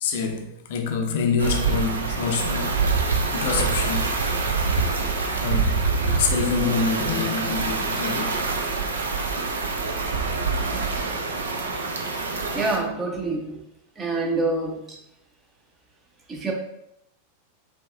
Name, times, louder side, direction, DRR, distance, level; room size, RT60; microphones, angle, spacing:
voice 1, 0.0-2.8 3.3-4.1 5.4-8.4, left 5 dB, 55° left, 0.5 m, -26 dB
sound 1, 1.4-12.8, right 4 dB, 70° right, 0.4 m, -25 dB
voice 2, 12.5-13.5 14.0-14.8 16.3-16.5, right 3 dB, 20° right, 0.8 m, -26 dB
5.4 x 2.4 x 2.2 m
figure-of-eight pair, 90°, 0 cm